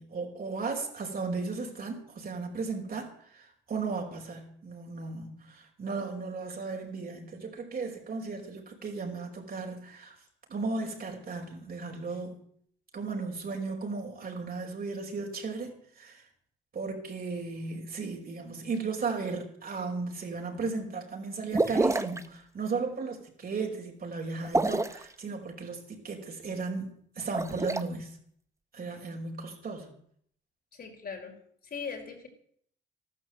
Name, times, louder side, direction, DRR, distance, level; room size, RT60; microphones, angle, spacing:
voice 1, 0.0-10.1 10.5-12.4 12.9-16.2 16.7-28.1 28.7-29.9, right 4 dB, 50° right, 1 dB, 5.2 m, -35 dB
sound 1, 21.5-22.2 24.4-25.0 27.2-27.8, right 2 dB, 15° right, 1.1 m, -27 dB
voice 2, 30.8-31.4 31.7-32.3, left 6 dB, 50° left, 1 dB, 5.0 m, -39 dB
14.0 x 12.5 x 8.0 m, 0.63 s
cardioid pair, 90°, 20 cm